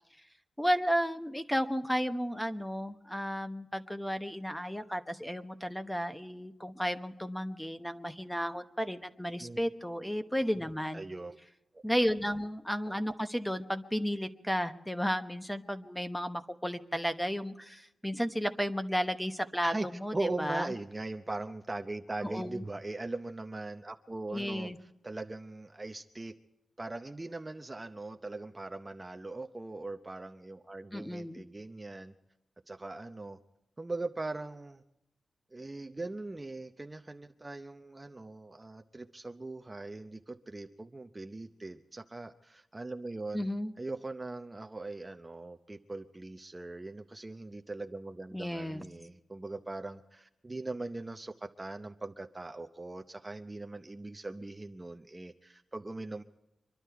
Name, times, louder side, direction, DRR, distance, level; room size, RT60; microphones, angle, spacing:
voice 1, 0.6-11.0 11.8-20.7 22.2-22.6 24.3-24.8 30.9-31.4 43.3-43.7 48.3-48.8, equal, 5° left, 9 dB, 1.0 m, -33 dB
voice 2, 10.9-11.4 19.6-19.9 20.1-24.7 25.0-26.3 26.8-32.1 32.7-33.4 33.8-34.8 35.5-43.4 43.8-56.2, right 2 dB, 20° right, 6 dB, 0.7 m, -40 dB
25.0 x 11.5 x 4.6 m, 0.89 s
wide cardioid pair, 100°, 0 cm